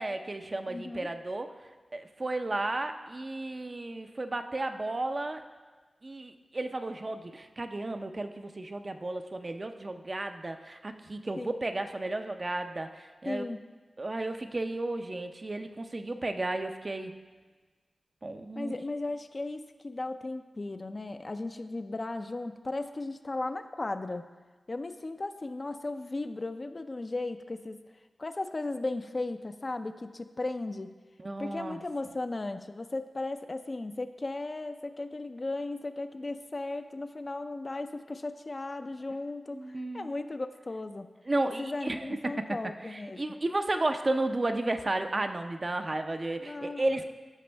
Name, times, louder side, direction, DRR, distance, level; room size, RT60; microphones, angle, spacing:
voice 1, 0.0-1.5 1.9-5.4 6.0-13.4 14.0-17.1 18.2-18.7 31.2-31.8 39.5-40.1 41.3-42.4 42.9-47.1, right 2 dB, 40° right, 7 dB, 0.5 m, -33 dB
voice 2, 0.7-1.1 11.4-11.5 13.2-13.6 18.5-24.2 24.7-27.8 28.2-30.9 31.4-41.1 41.6-43.4 46.4-47.0, left 2 dB, 45° left, 8 dB, 0.4 m, -36 dB
13.5 x 5.2 x 3.4 m, 1.3 s
cardioid pair, 55°, 0 cm